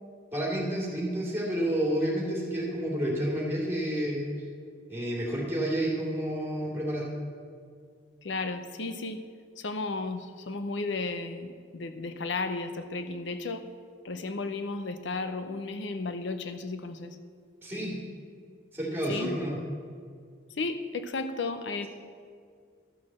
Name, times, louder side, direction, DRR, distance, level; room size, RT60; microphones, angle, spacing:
voice 1, 0.3-4.3 4.9-7.1 17.6-17.9 18.7-19.5, right 1 dB, 10° right, -4 dB, 2.8 m, -30 dB
voice 2, 8.2-9.2 9.6-13.6 14.0-17.2 19.1-19.3 20.5-21.9, left 3 dB, 75° left, 9 dB, 0.6 m, -34 dB
13.0 x 6.2 x 7.4 m, 2.1 s
head